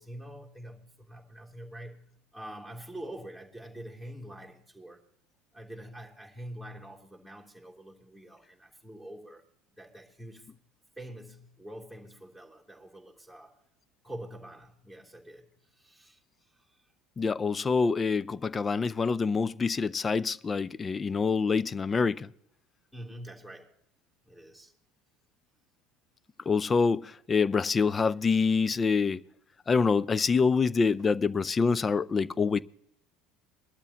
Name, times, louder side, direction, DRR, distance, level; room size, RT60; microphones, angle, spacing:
voice 1, 0.0-5.0 5.5-9.4 9.8-10.5 11.0-13.6 14.0-15.5 15.8-16.2 22.9-23.7 24.2-24.7 28.7-28.8, right 1 dB, 5° left, 3.2 m, -45 dB
voice 2, 17.2-22.3 26.5-29.2 29.7-32.6, left 5 dB, 25° left, 0.5 m, -26 dB
21.5 x 12.0 x 2.9 m
hypercardioid pair, 70°, 0 cm